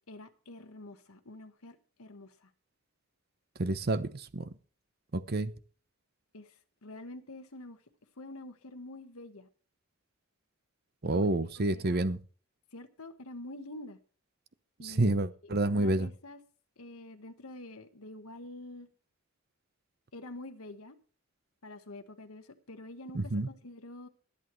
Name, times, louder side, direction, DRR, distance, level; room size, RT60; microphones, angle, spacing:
voice 1, 0.1-2.5 6.3-7.8 8.2-9.5 11.1-11.3 11.7-12.0 12.7-14.0 14.8-16.4 16.8-18.9 20.1-21.0 21.6-24.1, left 2 dB, 90° left, 1.4 m, -47 dB
voice 2, 3.6-4.5 5.1-5.5 11.0-12.2 14.8-16.1 23.1-23.5, right 2 dB, 45° right, 0.8 m, -29 dB
22.0 x 8.5 x 3.2 m
head